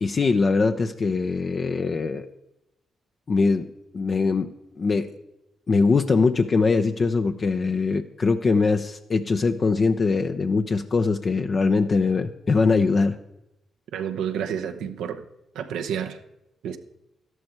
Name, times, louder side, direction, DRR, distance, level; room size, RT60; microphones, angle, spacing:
voice 1, 0.0-2.3 3.3-4.5 4.8-5.1 5.7-13.2, left 4 dB, 50° left, 0.7 m, -22 dB
voice 2, 13.9-15.2 15.5-16.2 16.6-16.8, right 8 dB, 80° right, 0.8 m, -29 dB
12.5 x 11.0 x 4.6 m
supercardioid pair, 50°, 0 cm